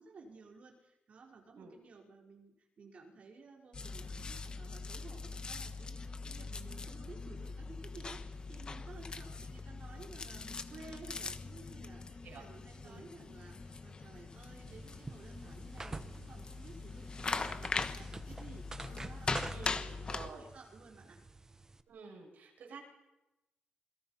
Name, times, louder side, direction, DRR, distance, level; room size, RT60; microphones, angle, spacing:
voice 1, 0.0-21.2, right 3 dB, 45° right, 1 dB, 4.8 m, -55 dB
sound 1, 3.7-20.3, left 4 dB, 30° left, 1.2 m, -41 dB
sound 2, 14.7-21.8, right 3 dB, 20° right, 1.0 m, -48 dB
voice 2, 19.5-20.5 21.9-22.8, right 5 dB, 65° right, 0 dB, 7.4 m, -50 dB
28.0 x 22.0 x 5.8 m, 1.0 s
wide cardioid pair, 175°, 3 cm